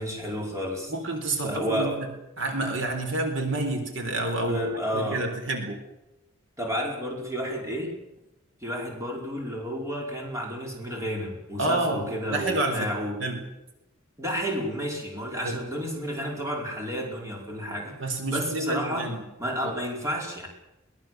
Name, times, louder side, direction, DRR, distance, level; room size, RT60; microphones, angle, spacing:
voice 1, 0.0-0.9 1.4-2.0 4.5-5.2 6.6-7.9 8.6-13.2 14.2-19.1 19.4-20.5, equal, 15° right, 0 dB, 5.2 m, -31 dB
voice 2, 0.9-2.1 2.4-4.6 4.9-5.8 11.6-12.0 12.3-12.9 13.2-13.4 15.4-15.6 18.0-19.2 19.6-19.7, right 2 dB, 60° right, 5 dB, 4.1 m, -28 dB
23.0 x 18.5 x 7.7 m, 0.95 s
head